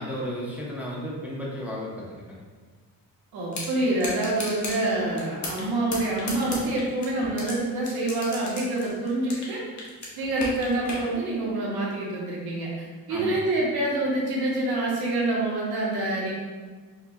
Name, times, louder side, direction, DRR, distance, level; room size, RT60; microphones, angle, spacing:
voice 1, 0.0-2.4 13.1-13.4, equal, 5° right, -5 dB, 0.6 m, -34 dB
voice 2, 3.3-9.6 10.2-16.3, right 2 dB, 90° right, -4 dB, 1.0 m, -26 dB
sound 1, 3.5-3.7 4.0-4.8 5.2-5.7 5.9-7.5 7.9-9.5 9.8-11.0, left 2 dB, 50° left, 1.0 m, -34 dB
4.6 x 2.2 x 2.7 m, 1.5 s
cardioid pair, 105°, 37 cm